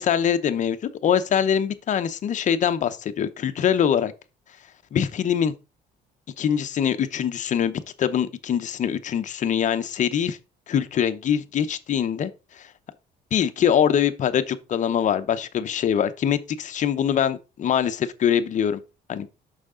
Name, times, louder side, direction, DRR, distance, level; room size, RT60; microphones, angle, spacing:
voice 1, 0.0-4.1 4.9-5.5 6.4-10.4 10.7-12.3 12.6-12.7 13.3-18.8 19.1-19.3, left 8 dB, 45° left, 0.8 m, -23 dB
6.2 x 5.8 x 3.8 m
cardioid pair, 110°, 17 cm